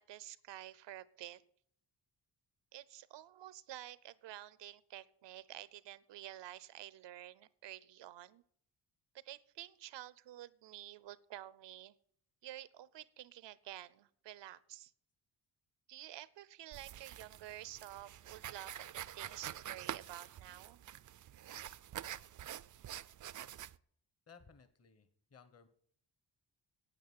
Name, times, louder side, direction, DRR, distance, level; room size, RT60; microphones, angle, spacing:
voice 1, 0.0-1.4 2.7-8.4 9.1-11.9 12.4-14.9 15.9-20.8, right 13 dB, 85° right, 19 dB, 0.8 m, -50 dB
sound 1, 16.7-23.7, right 11 dB, 45° right, 0.5 m, -47 dB
voice 2, 24.3-25.7, left 6 dB, 35° left, 11 dB, 1.2 m, -60 dB
9.2 x 9.0 x 9.4 m, 0.65 s
cardioid pair, 90°, 42 cm